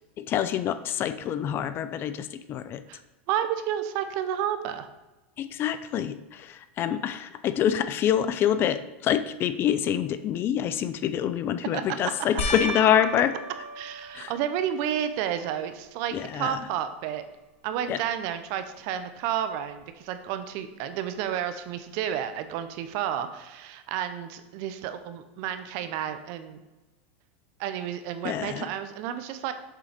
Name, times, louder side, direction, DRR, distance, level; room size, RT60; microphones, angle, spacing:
voice 1, 0.2-2.8 5.4-13.3 14.1-14.3 16.1-16.6 17.9-18.0 28.2-28.7, left 10 dB, 35° left, 12 dB, 0.4 m, -26 dB
voice 2, 3.3-4.9 11.7-11.8 13.8-17.3 17.6-26.6 27.6-29.5, right 10 dB, 55° right, 10 dB, 0.7 m, -31 dB
sound 1, 12.4-15.0 15.6-16.2 16.5-16.6 19.8-19.9, left 1 dB, 75° left, 1.4 m, -35 dB
7.4 x 3.8 x 5.1 m, 1.1 s
supercardioid pair, 120°, 7 cm